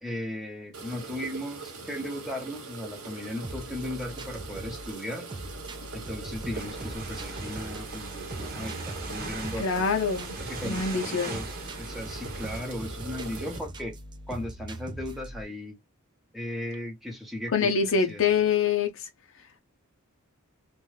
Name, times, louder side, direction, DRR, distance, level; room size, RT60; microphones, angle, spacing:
voice 1, 0.0-5.3 5.9-9.8 10.4-14.0 14.3-15.8 16.3-18.3, left 1 dB, ahead, 0.8 m, -37 dB
sound 1, 0.7-13.6, right 4 dB, 70° right, 1.1 m, -42 dB
sound 2, 3.4-15.4, right 1 dB, 20° right, 0.3 m, -41 dB
sound 3, 6.5-12.6, right 3 dB, 40° right, 0.9 m, -40 dB
voice 2, 9.6-11.4 17.5-19.1, left 6 dB, 60° left, 0.6 m, -25 dB
2.5 x 2.2 x 3.2 m
head